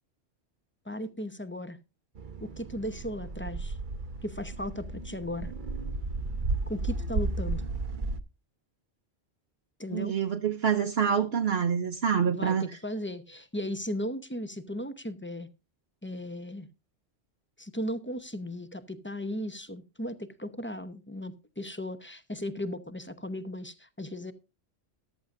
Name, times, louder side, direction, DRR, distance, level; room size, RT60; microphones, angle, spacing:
voice 1, 0.9-1.8 2.4-3.8 4.2-5.5 6.7-7.6 9.8-10.1 12.3-15.5 16.0-16.7 17.6-24.3, left 1 dB, 10° left, 0.7 m, -36 dB
sound 1, 2.1-8.2, right 3 dB, 50° right, 0.9 m, -34 dB
voice 2, 9.9-12.7, right 7 dB, 65° right, 1.1 m, -26 dB
14.0 x 12.0 x 2.5 m
omnidirectional pair, 1.2 m